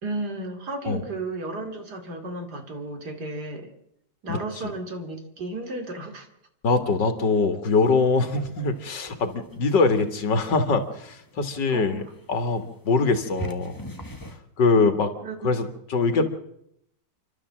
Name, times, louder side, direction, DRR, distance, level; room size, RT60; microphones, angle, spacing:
voice 1, 0.0-3.7 4.2-6.3 11.7-12.0 15.2-15.5, right 2 dB, 65° right, 5 dB, 3.1 m, -33 dB
voice 2, 4.3-4.7 6.6-12.0 12.3-13.7 14.6-15.1 15.4-16.2, left 3 dB, 80° left, 9 dB, 2.3 m, -23 dB
sound 1, 7.9-14.4, right 1 dB, 10° left, 1.4 m, -42 dB
29.0 x 12.0 x 7.5 m, 0.77 s
omnidirectional pair, 1.9 m